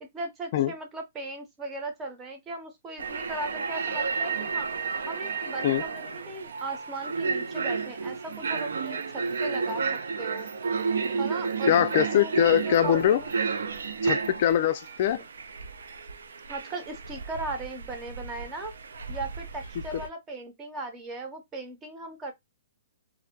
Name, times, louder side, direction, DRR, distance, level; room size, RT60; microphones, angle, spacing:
voice 1, 0.0-4.7 5.1-9.8 10.2-10.5 11.2-13.3 15.1-15.2 16.5-18.7 19.1-22.3, right 2 dB, 15° right, 0.6 m, -38 dB
sound 1, 3.0-20.1, right 5 dB, 85° right, 0.4 m, -32 dB
sound 2, 5.9-15.0, right 3 dB, 60° right, 1.3 m, -45 dB
voice 2, 11.7-13.2 14.0-15.2, left 10 dB, 40° left, 0.3 m, -23 dB
2.5 x 2.1 x 2.6 m
hypercardioid pair, 165°, 0 cm